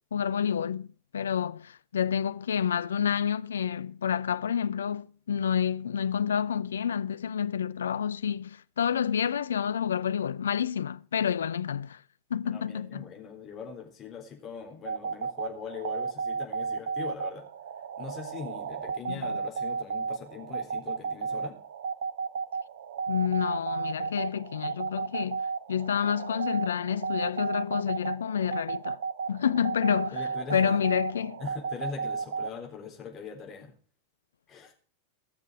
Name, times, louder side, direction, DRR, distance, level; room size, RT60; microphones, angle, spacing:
voice 1, 0.1-0.9 1.1-12.0 12.3-13.1 19.1-19.2 23.1-29.0 29.3-30.2 30.5-31.4, left 8 dB, 65° left, 0.5 m, -29 dB
voice 2, 12.5-17.5 18.0-21.6 30.1-30.9 31.4-33.7 34.5-34.7, left 6 dB, 30° left, 3.8 m, -41 dB
sound 1, 14.9-32.5, right 5 dB, 60° right, 0.8 m, -34 dB
17.0 x 6.7 x 6.1 m
figure-of-eight pair, 90°, 0 cm